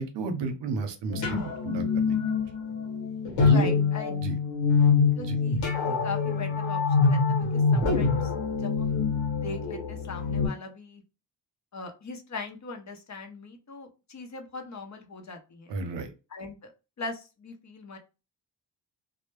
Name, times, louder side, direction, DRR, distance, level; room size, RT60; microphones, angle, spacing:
voice 1, 0.0-1.4 1.6-2.2 3.4-3.7 4.2-4.4 5.3-5.4 15.7-16.1, right 4 dB, 75° right, 7 dB, 0.6 m, -31 dB
sound 1, 1.1-10.5, left 5 dB, 85° left, 1.0 m, -25 dB
voice 2, 3.4-4.1 5.2-9.0 9.3-11.0 11.7-15.8 16.3-16.7 17.0-18.0, left 4 dB, 40° left, 4 dB, 0.7 m, -40 dB
2.1 x 2.0 x 3.0 m, 0.30 s
cardioid pair, 70°, 43 cm